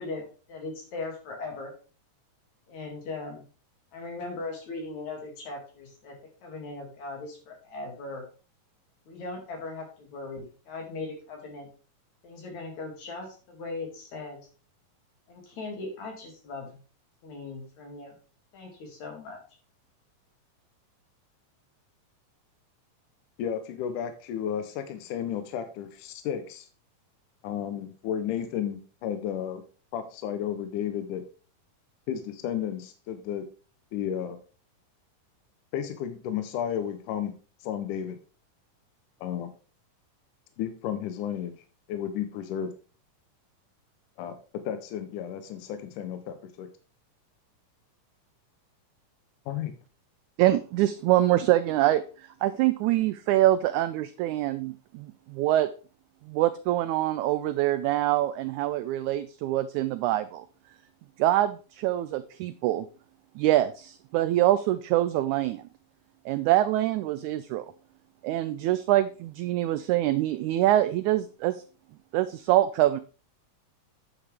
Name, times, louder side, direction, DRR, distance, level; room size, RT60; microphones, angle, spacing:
voice 1, 0.0-1.7 2.7-3.4 3.9-6.2 6.4-8.2 9.1-11.7 12.2-14.5 15.3-16.8 17.2-18.2 18.5-19.4, left 3 dB, 60° left, 1 dB, 3.7 m, -39 dB
voice 2, 23.4-26.7 27.4-29.6 29.9-31.2 32.1-33.5 33.9-34.4 35.7-37.3 37.6-38.2 39.2-39.5 40.6-41.5 41.9-42.7 44.2-44.4 44.7-46.7 49.5-49.7, left 9 dB, 75° left, 9 dB, 2.3 m, -32 dB
voice 3, 50.4-55.7 56.3-60.4 61.2-62.9 63.4-65.6 66.2-67.7 68.2-71.6 72.1-73.0, right 14 dB, 85° right, 11 dB, 1.7 m, -25 dB
9.6 x 7.2 x 3.4 m, 0.37 s
omnidirectional pair, 3.8 m